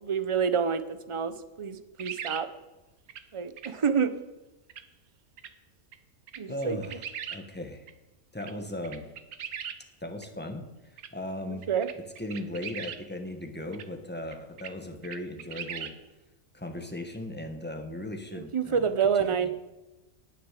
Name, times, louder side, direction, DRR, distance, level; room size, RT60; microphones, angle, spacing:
voice 1, 0.0-2.5 3.3-4.2 6.4-6.8 11.7-11.9 18.5-19.5, right 6 dB, 30° right, 12 dB, 0.6 m, -27 dB
sound 1, 2.0-2.4 3.1-3.2 3.6-3.7 4.7-4.8 5.4-5.5 5.9-6.0 6.3-7.4 7.9-8.0 8.4-8.5 8.8-9.8 10.2-10.3 11.0-11.1 11.6-13.0 13.7-13.9 14.3-14.7 15.0-15.9, right 8 dB, 90° right, 1.4 m, -39 dB
voice 2, 6.5-7.9 8.3-9.0 10.0-10.6 10.9-11.6 12.2-15.9 16.5-19.5, left 1 dB, 10° left, 4 dB, 1.4 m, -37 dB
19.0 x 6.8 x 7.5 m, 1.1 s
omnidirectional pair, 1.5 m